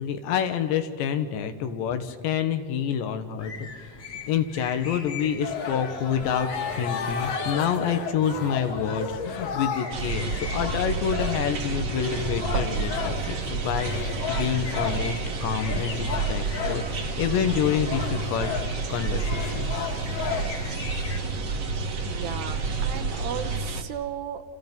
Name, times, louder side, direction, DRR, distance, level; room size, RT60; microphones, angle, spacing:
voice 1, 0.0-3.9 4.3-6.5 6.7-13.9 14.3-18.5 18.9-19.7, left 8 dB, 75° left, 8 dB, 3.5 m, -28 dB
sound 1, 3.4-21.2, left 3 dB, 35° left, 1.9 m, -41 dB
sound 2, 5.4-13.3 13.7-15.1 15.6-20.7, left 5 dB, 55° left, 3.3 m, -34 dB
sound 3, 9.9-23.8, right 4 dB, 50° right, 2.0 m, -30 dB
voice 2, 22.0-24.4, right 10 dB, 70° right, 8 dB, 2.9 m, -35 dB
30.0 x 29.0 x 5.4 m, 2.1 s
omnidirectional pair, 5.2 m